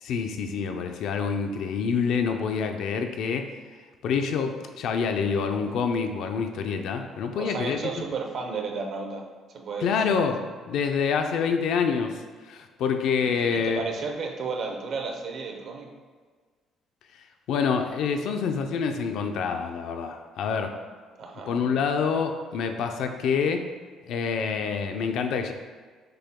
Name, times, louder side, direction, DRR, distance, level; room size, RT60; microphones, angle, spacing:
voice 1, 0.0-3.5 4.0-8.0 9.8-10.4 10.7-12.1 12.5-13.8 17.5-20.7 21.5-23.7 24.1-25.5, left 6 dB, 70° left, 5 dB, 0.4 m, -27 dB
voice 2, 7.4-10.2 13.2-15.9 21.2-21.5, right 4 dB, 55° right, 3 dB, 0.6 m, -33 dB
6.6 x 2.2 x 3.5 m, 1.5 s
cardioid pair, 120°, 0 cm